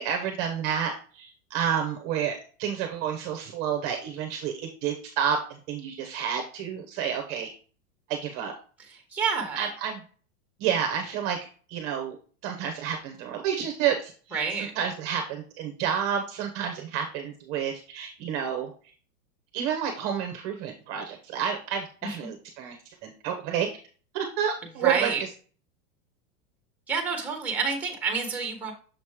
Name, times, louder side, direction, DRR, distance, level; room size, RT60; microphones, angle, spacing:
voice 1, 0.0-7.5 8.1-8.5 9.5-10.0 10.6-11.4 11.7-12.2 12.4-18.7 19.5-22.8 23.0-23.7 24.1-25.3, right 8 dB, 35° right, 4 dB, 0.8 m, -30 dB
voice 2, 8.9-9.7 14.3-14.7 22.0-22.3 24.8-25.2 26.9-28.7, right 5 dB, 5° right, 3 dB, 1.1 m, -29 dB
6.5 x 3.0 x 4.8 m, 0.40 s
supercardioid pair, 150°, 45 cm